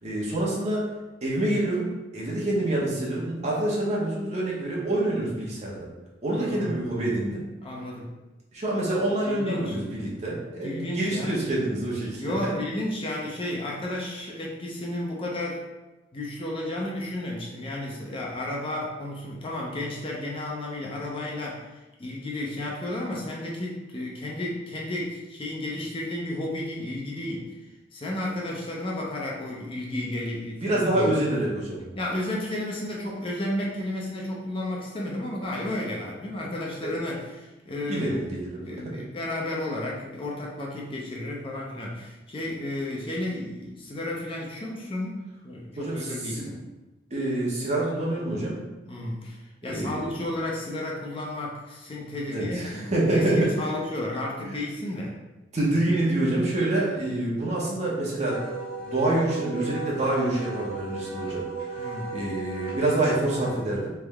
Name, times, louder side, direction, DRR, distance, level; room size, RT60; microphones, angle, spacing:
voice 1, 0.0-0.8 1.2-5.9 6.2-7.4 8.5-12.5 30.6-31.8 36.8-37.0 37.9-38.9 45.8-46.5 47.1-48.6 49.6-50.0 52.3-53.5 54.4-54.6 55.5-58.4 58.8-61.5 62.1-63.9, right 1 dB, 40° right, -5 dB, 1.1 m, -26 dB
voice 2, 6.3-6.8 7.6-8.2 9.3-9.8 10.6-11.4 12.2-15.6 16.1-31.1 31.9-38.4 38.6-46.6 48.8-55.2 61.8-62.2, left 1 dB, 30° left, -3 dB, 0.6 m, -32 dB
Wind instrument woodwind instrument, 58.3-63.5, right 4 dB, 55° right, 0.8 m, -35 dB
3.5 x 3.2 x 3.4 m, 1.1 s
head